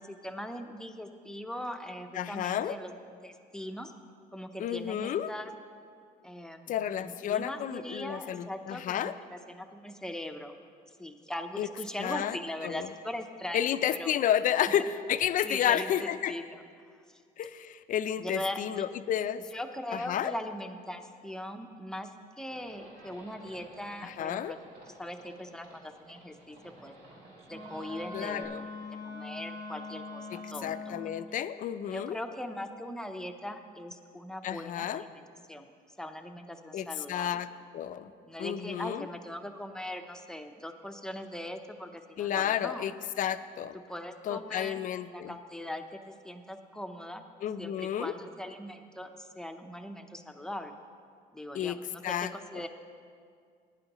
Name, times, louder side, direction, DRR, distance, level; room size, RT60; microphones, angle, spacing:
voice 1, 0.0-2.9 3.2-3.9 4.3-5.5 6.2-10.5 11.0-13.6 13.9-14.1 14.5-14.7 15.4-16.6 17.1-17.2 18.2-18.9 19.5-24.6 25.0-26.6 26.8-26.9 27.5-28.7 29.0-31.1 31.9-35.2 35.5-35.7 36.0-37.4 38.2-42.9 43.9-44.8 45.1-47.2 47.6-50.8 51.3-52.7, left 1 dB, 5° left, 5 dB, 0.7 m, -40 dB
voice 2, 2.1-2.8 4.6-5.3 6.7-9.1 11.6-11.7 12.0-12.4 12.6-12.9 13.5-16.3 17.4-19.4 19.9-20.3 24.0-24.5 28.1-28.6 30.3-32.2 34.4-35.0 36.7-37.5 37.7-38.1 38.4-39.0 42.2-42.9 43.2-43.7 44.2-45.3 47.4-48.1 51.5-51.8 52.0-52.3, left 10 dB, 50° left, 12 dB, 0.4 m, -31 dB
Livestock farm animals working animals, 22.5-28.4, right 2 dB, 70° right, 3.0 m, -54 dB
Wind instrument woodwind instrument, 27.5-31.1, left 3 dB, 90° right, 3.0 m, -42 dB
16.5 x 9.8 x 3.0 m, 2.2 s
cardioid pair, 110°, 17 cm